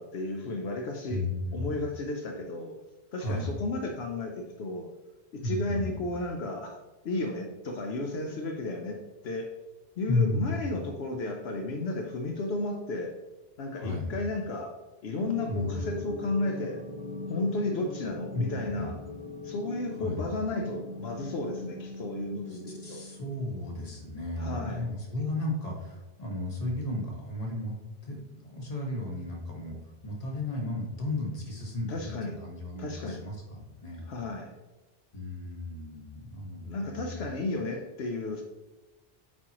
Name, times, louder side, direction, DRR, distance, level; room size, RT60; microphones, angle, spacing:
voice 1, 0.0-1.2 1.5-2.8 3.1-4.9 5.3-6.8 7.0-9.5 10.0-13.1 13.6-14.7 15.0-16.8 17.3-19.0 19.4-23.0 24.4-24.8 31.9-32.4 32.8-33.2 34.1-34.5 36.7-38.4, left 2 dB, 75° left, 2 dB, 1.0 m, -33 dB
voice 2, 1.1-1.9 3.2-3.5 5.4-6.0 10.1-10.6 13.8-14.1 15.5-15.8 18.3-18.4 18.8-18.9 20.0-20.2 22.5-27.7 28.0-34.1 35.1-37.3, left 2 dB, 35° left, -1 dB, 1.5 m, -34 dB
sound 1, 15.2-24.1, left 2 dB, 35° right, 0.5 m, -41 dB
8.4 x 4.5 x 2.9 m, 1.1 s
omnidirectional pair, 1.1 m